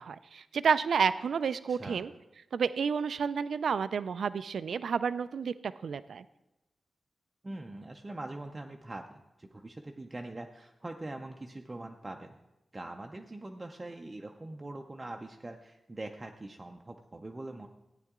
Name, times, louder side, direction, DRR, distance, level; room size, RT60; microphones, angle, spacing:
voice 1, 0.0-2.1 2.5-6.2, right 6 dB, 85° right, 14 dB, 0.3 m, -30 dB
voice 2, 1.7-2.1 7.4-12.4 12.7-17.7, right 2 dB, 20° right, 3 dB, 0.5 m, -43 dB
14.5 x 9.2 x 3.6 m, 0.99 s
wide cardioid pair, 170°, 0 cm